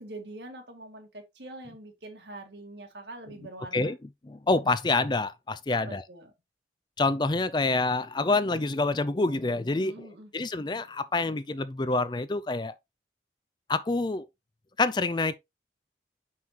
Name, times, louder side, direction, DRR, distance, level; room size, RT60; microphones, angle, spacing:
voice 1, 0.0-3.9 5.7-6.3 9.8-10.3, right 2 dB, 75° right, 1.8 m, -44 dB
voice 2, 4.2-6.0 7.0-12.7 13.7-14.3 14.8-15.4, left 3 dB, 25° left, 0.4 m, -27 dB
6.3 x 5.6 x 2.9 m
head